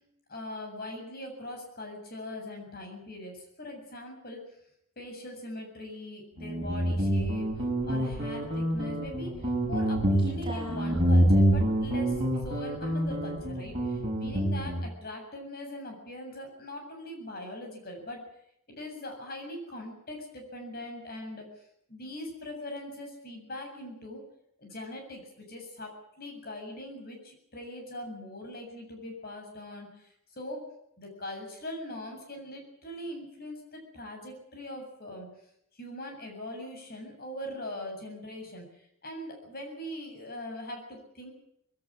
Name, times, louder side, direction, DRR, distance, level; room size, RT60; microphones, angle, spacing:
voice 1, 0.3-4.4 5.0-18.2 18.7-21.5 21.9-24.2 24.6-30.1 30.4-30.6 31.0-35.3 35.8-41.3, left 1 dB, 45° left, 3 dB, 7.6 m, -41 dB
Guitar, 6.4-14.9, equal, 25° right, 6.2 m, -27 dB
21.0 x 18.0 x 8.7 m, 0.75 s
head